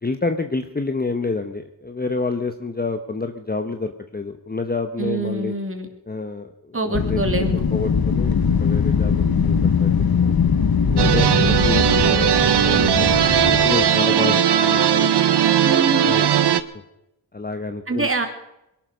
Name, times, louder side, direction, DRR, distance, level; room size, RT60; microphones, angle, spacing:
voice 1, 0.0-5.5 6.1-10.4 10.9-15.2 16.0-16.3 17.3-18.1, left 3 dB, 20° left, 7 dB, 1.0 m, -28 dB
voice 2, 5.0-5.9 6.7-7.7 9.1-9.6 11.4-11.6 11.8-12.1 14.1-14.4 15.6-16.3 17.9-18.3, right 3 dB, 30° right, 5 dB, 2.7 m, -26 dB
Wind, 6.9-13.9, left 6 dB, 60° left, 1.3 m, -21 dB
sound 1, 11.0-16.6, right 9 dB, 75° right, 0.9 m, -18 dB
22.0 x 12.0 x 5.1 m, 0.87 s
wide cardioid pair, 80°, 41 cm